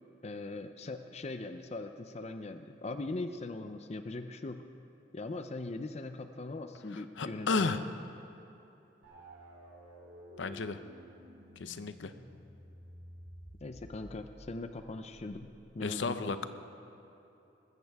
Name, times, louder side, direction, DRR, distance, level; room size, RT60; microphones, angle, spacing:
voice 1, 0.2-4.6 5.1-7.8 13.6-15.5 15.7-16.5, left 2 dB, 35° left, 8 dB, 0.6 m, -40 dB
voice 2, 7.2-7.8 10.4-10.8 11.6-12.1 15.8-16.5, left 4 dB, 75° left, 10 dB, 0.7 m, -32 dB
sound 1, 9.0-15.7, equal, 85° right, 3.7 m, -53 dB
20.5 x 15.0 x 3.6 m, 3.0 s
head